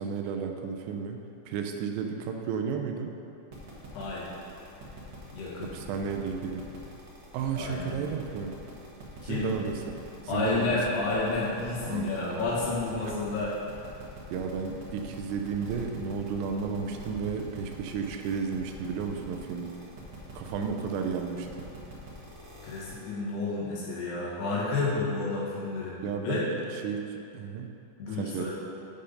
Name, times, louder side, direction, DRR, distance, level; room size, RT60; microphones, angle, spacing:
voice 1, 0.0-3.1 5.6-6.7 7.3-8.6 9.2-10.8 11.8-12.6 13.0-13.3 14.3-19.7 20.4-21.7 26.0-27.7 28.1-28.5, right 6 dB, 85° right, 4 dB, 2.8 m, -33 dB
sound 1, 3.5-23.0, right 1 dB, 60° right, 1.8 m, -45 dB
voice 2, 3.9-4.3 5.3-5.7 7.6-7.9 9.2-9.5 10.3-13.6 22.6-26.0 26.2-26.5 28.0-28.5, left 3 dB, 70° left, -7 dB, 3.5 m, -30 dB
8.8 x 5.2 x 5.4 m, 2.8 s
omnidirectional pair, 5.0 m